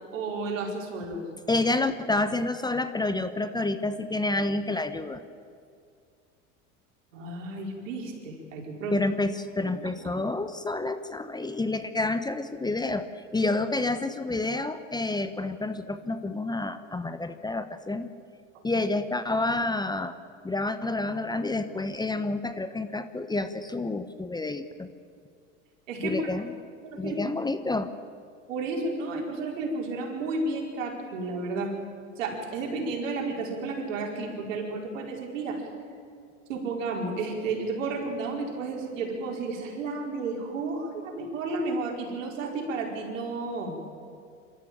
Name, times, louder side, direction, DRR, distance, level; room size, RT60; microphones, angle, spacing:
voice 1, 0.1-1.2 7.1-9.0 9.6-9.7 18.7-18.8 25.9-26.2 26.8-27.2 28.5-31.7 32.2-35.6 36.5-43.8, right 3 dB, 80° right, 0 dB, 5.0 m, -32 dB
voice 2, 1.5-5.2 8.9-18.1 18.6-20.2 20.4-24.9 26.0-26.5 27.0-27.9, left 2 dB, 10° left, 10 dB, 1.0 m, -29 dB
25.0 x 13.5 x 8.8 m, 2.3 s
hypercardioid pair, 95°, 38 cm